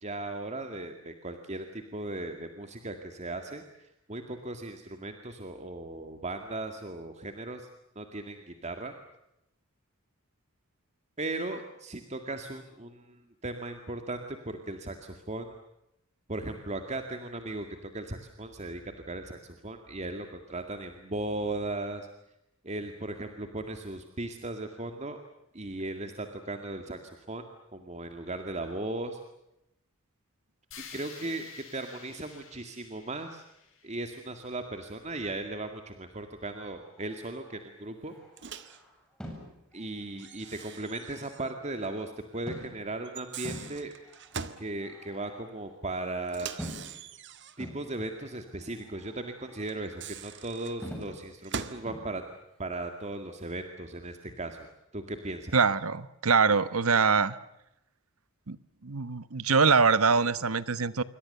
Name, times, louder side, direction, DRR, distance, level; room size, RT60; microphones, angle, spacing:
voice 1, 0.0-7.7 8.0-8.9 11.2-15.5 16.3-22.1 22.6-25.2 25.5-27.5 27.7-29.2 30.8-33.4 33.8-38.1 39.7-43.9 44.6-46.5 47.6-52.2 52.6-54.7 54.9-55.5, right 2 dB, 30° right, 6 dB, 2.1 m, -37 dB
sound 1, 30.7-34.8, left 7 dB, 65° left, 7.7 m, -51 dB
sound 2, 36.6-41.8 42.5-43.0 43.4-45.9 46.6-47.1 47.6-50.5 50.8-51.3 51.9-52.3, equal, 5° left, 7.7 m, -46 dB
Microwave oven, 38.4-38.8 40.2-41.6 41.8-41.9 43.0-44.7 46.3-47.7 49.7-51.9, right 6 dB, 55° right, 1.7 m, -42 dB
voice 2, 55.5-57.3 58.5-58.6 58.8-61.0, right 5 dB, 85° right, 15 dB, 1.2 m, -24 dB
27.5 x 24.5 x 6.8 m, 0.85 s
head